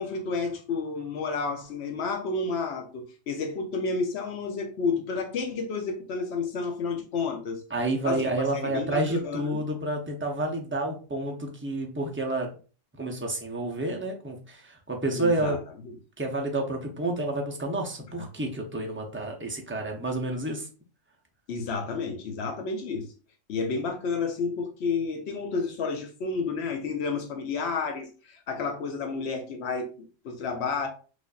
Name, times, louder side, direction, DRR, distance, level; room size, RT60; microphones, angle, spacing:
voice 1, 0.0-7.6 8.0-9.6 15.1-15.6 15.9-16.0 21.5-23.1 23.5-30.9, left 4 dB, 65° left, 1.0 m, -31 dB
voice 2, 7.7-12.5 13.0-15.6 16.2-20.7, right 2 dB, 15° right, 0.4 m, -29 dB
5.0 x 2.5 x 2.4 m
omnidirectional pair, 1.3 m